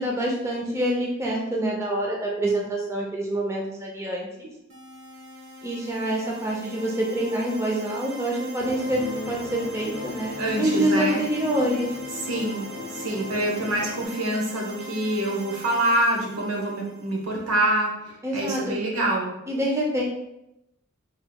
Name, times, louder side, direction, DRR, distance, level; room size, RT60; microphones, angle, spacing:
voice 1, 0.0-4.5 5.6-11.9 18.2-18.8 19.5-20.0, right 1 dB, 15° right, -2 dB, 0.5 m, -26 dB
sound 1, 4.7-17.4, right 1 dB, 60° right, 0.9 m, -41 dB
sound 2, 8.6-14.0, left 4 dB, 60° left, 0.4 m, -37 dB
voice 2, 10.4-11.2 12.1-19.3, right 1 dB, 85° right, -1 dB, 0.9 m, -26 dB
4.5 x 3.2 x 2.2 m, 0.87 s
head